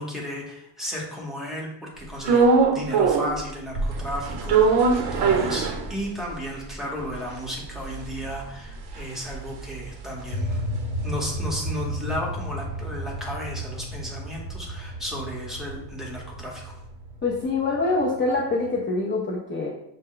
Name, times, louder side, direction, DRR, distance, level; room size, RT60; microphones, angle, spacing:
voice 1, 0.0-10.6 11.0-16.7, equal, ahead, -3 dB, 0.9 m, -34 dB
sound 1, 2.2-3.4 3.7-6.3 6.7-6.8 7.0-11.5 11.8-15.9, right 4 dB, 60° right, 0.8 m, -24 dB
sound 2, 10.3-18.8, equal, 60° left, 0.8 m, -34 dB
voice 2, 17.2-19.7, left 3 dB, 25° left, -2 dB, 0.5 m, -25 dB
6.4 x 2.2 x 3.7 m, 0.81 s
cardioid pair, 160°, 44 cm